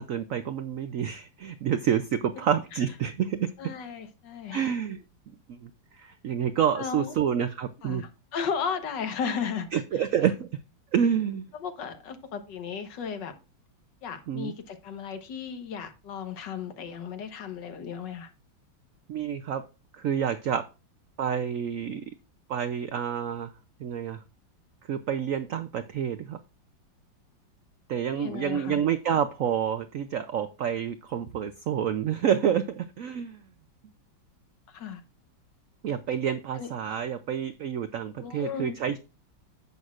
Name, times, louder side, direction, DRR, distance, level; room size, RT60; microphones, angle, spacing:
voice 1, 0.0-3.5 4.5-5.0 5.5-5.7 6.0-8.0 9.7-10.5 10.9-11.4 14.3-14.5 19.1-19.6 20.0-20.6 21.2-22.0 22.5-23.5 23.8-24.2 24.9-26.4 27.9-33.4 35.8-39.0, right 8 dB, 85° right, 10 dB, 0.7 m, -28 dB
voice 2, 3.6-4.7 6.7-7.1 7.8-9.7 10.2-10.3 11.5-13.3 14.0-18.3 28.2-28.8 34.7-35.0 36.5-36.7 38.2-38.8, left 6 dB, 70° left, 8 dB, 1.7 m, -35 dB
10.5 x 7.8 x 2.5 m, 0.30 s
omnidirectional pair, 2.1 m